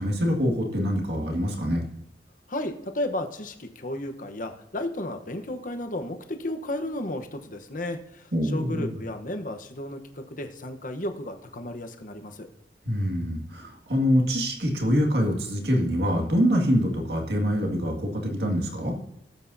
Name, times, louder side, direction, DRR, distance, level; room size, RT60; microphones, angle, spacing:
voice 1, 0.0-1.8 8.3-9.0 12.9-19.0, equal, 60° right, 1 dB, 2.1 m, -25 dB
voice 2, 2.5-12.5, left 1 dB, 45° left, 6 dB, 1.0 m, -33 dB
17.5 x 8.2 x 2.7 m, 0.80 s
head